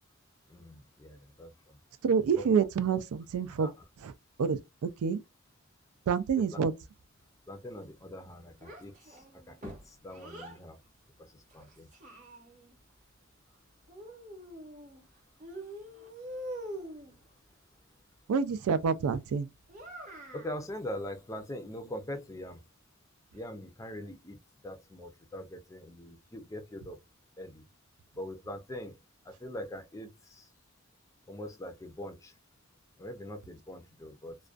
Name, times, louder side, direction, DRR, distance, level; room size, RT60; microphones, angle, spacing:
voice 1, 0.5-1.8 2.4-2.7 3.6-3.8 6.5-6.6 7.5-10.8 11.2-11.9 20.3-22.6 23.3-24.4 24.6-27.0 27.4-27.6 28.2-29.0 29.3-30.5 31.3-32.3 33.0-34.4, left 1 dB, 15° left, 0.4 m, -42 dB
voice 2, 2.0-3.7 4.4-5.2 6.1-6.7 18.3-19.5, right 6 dB, 80° right, 0.3 m, -27 dB
Child speech kid speaking, 8.6-10.6 11.5-12.7 13.9-15.1 15.4-17.2 19.7-20.6, right 1 dB, 35° right, 0.8 m, -44 dB
2.4 x 2.2 x 2.4 m
head